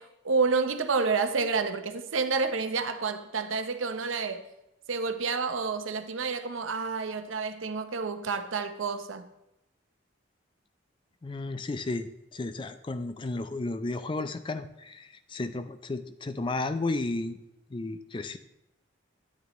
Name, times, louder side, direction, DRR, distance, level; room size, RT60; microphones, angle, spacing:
voice 1, 0.0-4.4 4.9-9.3, right 4 dB, 90° right, 0.8 m, -29 dB
voice 2, 11.2-17.4 17.7-18.4, left 2 dB, 25° left, 0.4 m, -33 dB
12.5 x 8.8 x 3.0 m
head